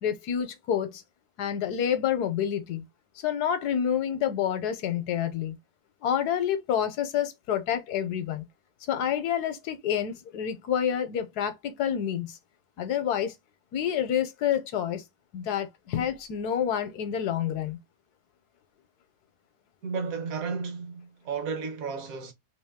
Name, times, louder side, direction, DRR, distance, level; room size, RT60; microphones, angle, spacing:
voice 1, 0.0-1.0 1.4-2.8 3.2-5.6 6.0-8.4 8.9-12.4 12.8-13.4 13.7-15.0 15.3-17.8, left 9 dB, 70° left, 1.2 m, -28 dB
voice 2, 19.8-22.3, right 5 dB, 60° right, 1.3 m, -33 dB
3.1 x 3.0 x 3.5 m
omnidirectional pair, 1.8 m